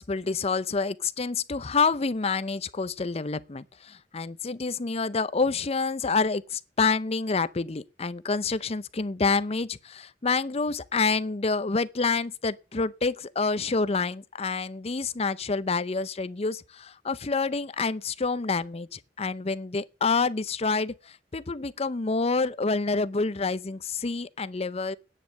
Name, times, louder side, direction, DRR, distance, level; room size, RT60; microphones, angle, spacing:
voice 1, 0.0-25.0, left 4 dB, 35° left, 0.6 m, -28 dB
10.0 x 8.4 x 9.1 m
head